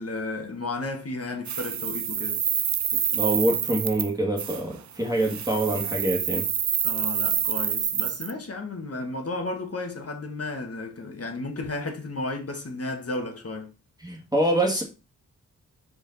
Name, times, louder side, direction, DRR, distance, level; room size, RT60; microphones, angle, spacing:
voice 1, 0.0-2.4 6.8-13.7, left 2 dB, 40° left, 1.5 m, -33 dB
sound 1, 1.5-4.1 4.4-4.6 5.2-8.3, right 9 dB, 50° right, 0.6 m, -27 dB
voice 2, 3.1-6.4 14.0-14.8, right 1 dB, 10° right, 1.9 m, -25 dB
5.0 x 4.7 x 4.0 m
cardioid pair, 65°, 35 cm